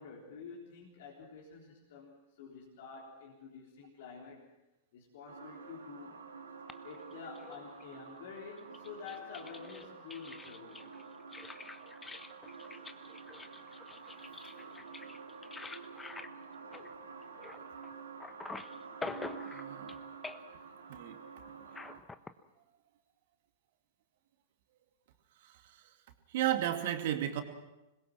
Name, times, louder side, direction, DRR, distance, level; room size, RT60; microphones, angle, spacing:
voice 1, 0.0-4.5 4.9-6.2 6.8-10.9, left 5 dB, 55° left, -2 dB, 3.8 m, -49 dB
sound 1, 5.3-22.0, right 5 dB, 70° right, 2.9 m, -49 dB
sound 2, 6.7-8.0 8.6-17.9 18.2-20.0 20.2-20.7 21.7-22.3, left 3 dB, 10° left, 1.1 m, -47 dB
voice 2, 19.5-19.9 20.9-21.2 26.3-27.4, right 12 dB, 50° right, 6 dB, 2.5 m, -33 dB
26.0 x 21.5 x 6.1 m, 0.96 s
figure-of-eight pair, 95°, 0 cm